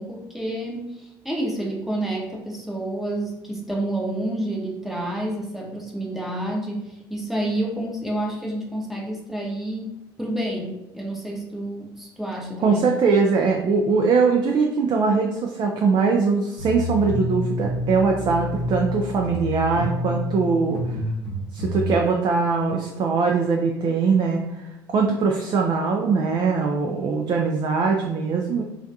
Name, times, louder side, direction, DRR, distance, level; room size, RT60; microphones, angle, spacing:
voice 1, 0.0-12.9, right 1 dB, ahead, -2 dB, 0.7 m, -29 dB
voice 2, 12.6-21.0 21.5-24.6 24.9-28.6, right 4 dB, 45° right, 1 dB, 0.4 m, -21 dB
sound 1, 16.6-21.9, left 1 dB, 75° right, 0.8 m, -28 dB
2.3 x 2.2 x 2.6 m, 0.94 s
hypercardioid pair, 60°, 11 cm